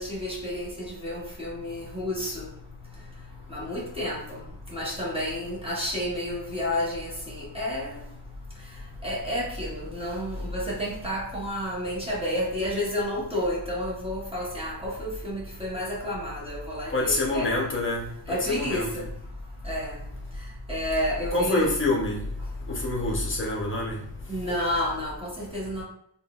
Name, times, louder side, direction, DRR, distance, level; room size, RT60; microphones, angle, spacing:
voice 1, 0.0-2.5 2.9-3.1 3.5-8.0 8.5-17.6 18.3-19.1 19.6-20.0 20.3-21.7 24.3-25.8, left 1 dB, 15° right, -6 dB, 0.7 m, -31 dB
voice 2, 16.9-18.9 21.3-22.2 22.7-24.0, left 2 dB, 25° left, -2 dB, 0.6 m, -26 dB
3.5 x 2.1 x 2.3 m, 0.72 s
wide cardioid pair, 175°, 46 cm